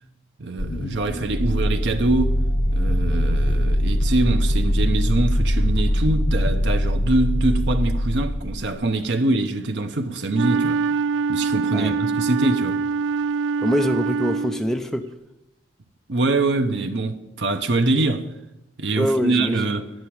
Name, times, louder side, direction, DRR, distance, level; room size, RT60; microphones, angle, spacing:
voice 1, 0.4-2.5 2.7-10.8 11.3-12.8 16.1-18.3 18.8-19.9, right 2 dB, 70° right, 0.8 m, -24 dB
sound 1, 0.6-8.8, equal, 25° left, 0.8 m, -22 dB
Wind instrument woodwind instrument, 10.3-14.8, right 5 dB, 85° right, 0.3 m, -24 dB
voice 2, 13.6-15.1 19.0-19.8, equal, 5° left, 0.5 m, -24 dB
10.5 x 6.3 x 8.6 m
head